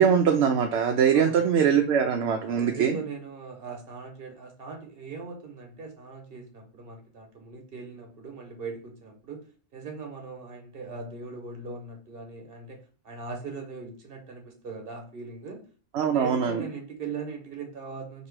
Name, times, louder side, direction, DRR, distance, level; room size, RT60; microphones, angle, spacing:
voice 1, 0.0-3.0 15.9-16.7, right 7 dB, 70° right, 3 dB, 0.9 m, -22 dB
voice 2, 2.4-9.4 9.7-12.8 13.0-15.6 16.0-18.3, right 4 dB, 50° right, 3 dB, 1.3 m, -40 dB
3.0 x 2.9 x 4.5 m, 0.41 s
omnidirectional pair, 1.2 m